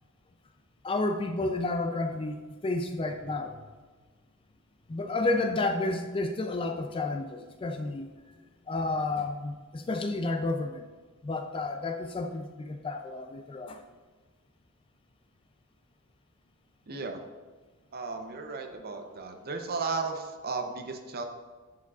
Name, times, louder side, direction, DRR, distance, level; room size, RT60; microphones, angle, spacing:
voice 1, 0.8-2.4 2.6-3.6 4.9-8.1 8.7-10.9 11.2-13.8, left 2 dB, 25° left, 6 dB, 0.3 m, -31 dB
voice 2, 16.9-17.2 17.9-21.2, right 4 dB, 45° right, 5 dB, 0.6 m, -35 dB
10.5 x 4.9 x 2.4 m, 1.4 s
head